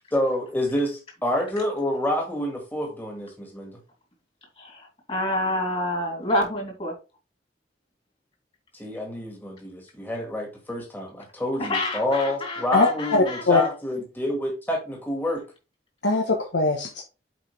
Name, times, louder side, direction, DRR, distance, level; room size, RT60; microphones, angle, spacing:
voice 1, 0.1-3.7 8.7-15.4, left 1 dB, 10° left, 0 dB, 1.9 m, -28 dB
voice 2, 4.6-6.9 11.6-13.7, left 1 dB, 30° left, -1 dB, 3.1 m, -28 dB
voice 3, 12.7-13.6 16.0-17.0, left 3 dB, 90° left, 1 dB, 1.2 m, -21 dB
7.6 x 4.9 x 3.3 m, 0.31 s
head